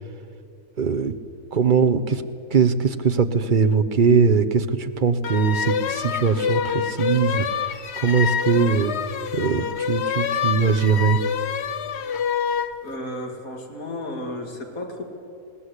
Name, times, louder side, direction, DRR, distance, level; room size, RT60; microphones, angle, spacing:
voice 1, 0.8-1.1 1.5-2.2 2.5-8.9 9.3-11.2, right 5 dB, 40° right, 8 dB, 0.9 m, -21 dB
sound 1, 5.2-12.7, left 7 dB, 55° left, 0.9 m, -26 dB
voice 2, 12.8-15.0, left 1 dB, 75° left, 2 dB, 2.7 m, -33 dB
21.5 x 18.5 x 8.1 m, 2.5 s
omnidirectional pair, 1.5 m